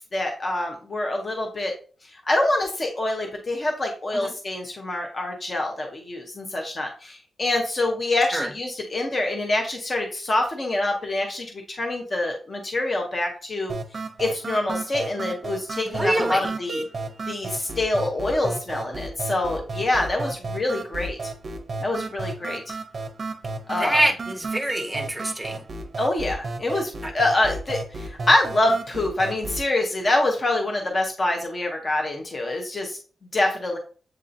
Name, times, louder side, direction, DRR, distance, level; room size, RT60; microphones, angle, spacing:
voice 1, 0.1-1.7 2.1-13.7 14.2-16.8 17.3-21.2 21.8-22.7 23.7-24.0 26.0-33.0 33.3-33.8, left 2 dB, 30° left, 2 dB, 0.7 m, -25 dB
sound 1, 13.7-29.7, right 2 dB, 40° right, 0.6 m, -33 dB
voice 2, 15.9-16.5 23.8-25.6 27.0-27.1, right 1 dB, ahead, 1 dB, 0.8 m, -25 dB
7.6 x 2.7 x 2.5 m, 0.39 s
wide cardioid pair, 170°, 0 cm